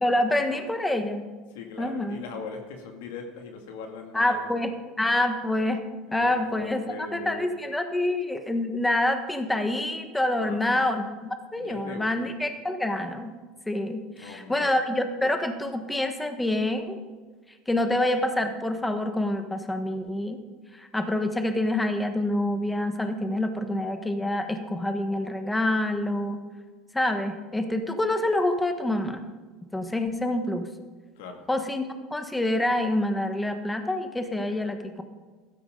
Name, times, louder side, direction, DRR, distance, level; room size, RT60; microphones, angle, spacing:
voice 1, 0.0-1.2 1.8-2.2 4.1-4.7 5.0-5.8 6.1-6.8 7.1-13.3 13.7-17.0 17.7-20.4 20.8-26.4 26.9-29.2 29.7-30.7 31.5-35.0, left 1 dB, 10° left, 7 dB, 1.4 m, -27 dB
voice 2, 1.5-4.6 6.1-7.6 10.3-10.9 11.6-12.3 14.2-14.8 31.2-31.5, left 5 dB, 85° left, 3 dB, 2.3 m, -40 dB
15.5 x 13.0 x 3.9 m, 1.4 s
supercardioid pair, 100°, 0 cm